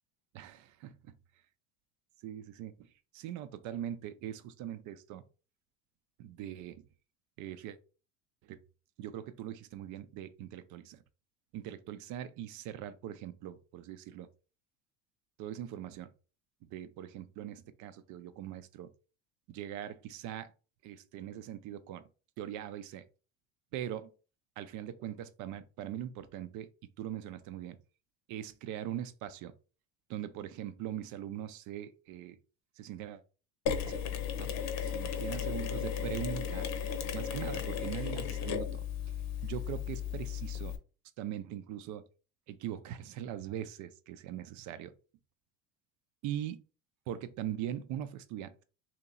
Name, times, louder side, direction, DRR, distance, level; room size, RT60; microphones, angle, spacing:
voice 1, 0.3-1.1 2.2-2.9 3.1-5.2 6.2-6.8 7.4-7.8 8.4-8.6 9.0-11.0 11.5-14.3 15.4-16.1 16.6-18.9 19.5-20.5 20.8-22.0 22.4-23.0 23.7-24.1 24.6-26.7 27.0-27.8 28.3-29.5 30.1-32.4 32.8-33.2 33.8-34.1 34.3-34.5 34.8-36.7 37.1-38.9 39.4-40.7 41.2-42.0 42.5-44.9 46.2-46.6 47.1-48.5, right 11 dB, 55° right, 0.6 m, -41 dB
Mechanisms, 33.7-40.8, left 8 dB, 50° left, 0.8 m, -35 dB
3.0 x 2.9 x 3.8 m
supercardioid pair, 100°, 35 cm